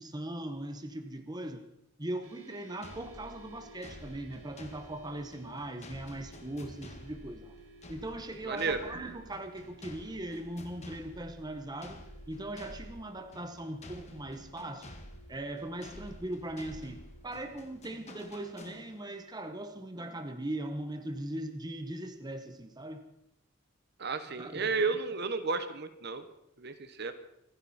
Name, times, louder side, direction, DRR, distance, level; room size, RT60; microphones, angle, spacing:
voice 1, 0.0-1.6 2.0-7.6 7.9-12.0 12.3-14.9 15.3-23.0 24.3-24.7, right 1 dB, 20° right, 7 dB, 1.1 m, -40 dB
sound 1, 2.2-21.9, right 2 dB, 80° right, 3.4 m, -57 dB
sound 2, 2.8-19.3, left 1 dB, 35° left, 1.7 m, -51 dB
voice 2, 8.4-8.8 24.0-26.2 26.6-27.1, right 4 dB, 55° right, 10 dB, 1.2 m, -32 dB
26.5 x 11.0 x 4.3 m, 0.81 s
head